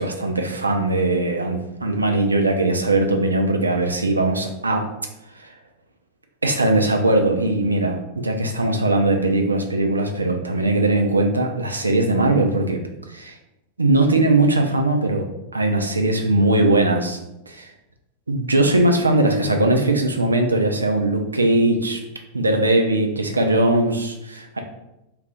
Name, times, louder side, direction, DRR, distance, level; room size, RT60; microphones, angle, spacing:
voice 1, 0.0-4.9 5.4-5.5 6.4-12.8 13.1-13.4 13.8-17.2 17.5-17.7 18.3-22.0 22.3-24.6, right 2 dB, 80° right, 4 dB, 0.4 m, -20 dB
2.4 x 2.4 x 3.8 m, 0.90 s
figure-of-eight pair, 90°, 0 cm